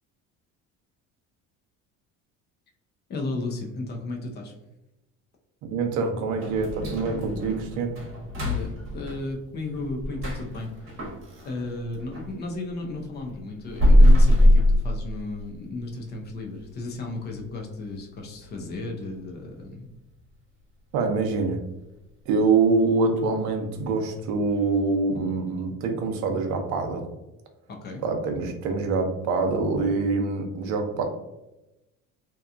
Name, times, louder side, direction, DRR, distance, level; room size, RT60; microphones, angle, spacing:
voice 1, 3.1-4.5 8.4-11.1 11.4-19.9 27.7-28.0, left 2 dB, 30° left, 2 dB, 0.5 m, -34 dB
voice 2, 5.7-8.0 20.9-21.6 22.3-27.1 28.0-31.0, right 4 dB, 65° right, 4 dB, 0.6 m, -25 dB
sound 1, 6.4-12.3 12.7-15.6 15.9-16.0 16.5-16.6 17.1-17.5 17.8-17.9 18.4-18.5, left 1 dB, 40° right, 1.1 m, -22 dB
2.8 x 2.2 x 2.4 m, 0.94 s
cardioid pair, 150°, 32 cm